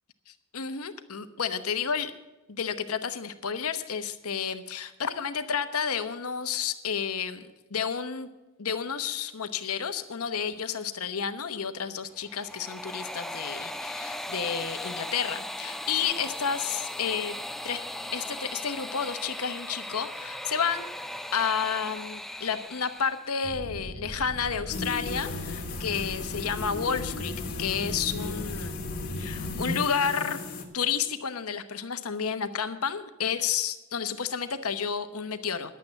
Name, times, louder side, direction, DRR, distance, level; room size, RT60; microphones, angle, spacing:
voice 1, 0.3-2.1 2.5-8.3 8.6-17.4 17.6-17.8 18.1-20.9 21.3-27.3 27.6-28.8 29.2-30.4 30.7-35.8, left 7 dB, 85° left, 10 dB, 1.0 m, -31 dB
sound 1, 12.2-23.3, left 1 dB, ahead, 0.4 m, -38 dB
sound 2, 23.4-29.8, equal, 55° right, 3.9 m, -38 dB
sound 3, 24.7-30.6, left 3 dB, 45° left, 1.9 m, -36 dB
11.0 x 8.5 x 7.8 m, 1.1 s
head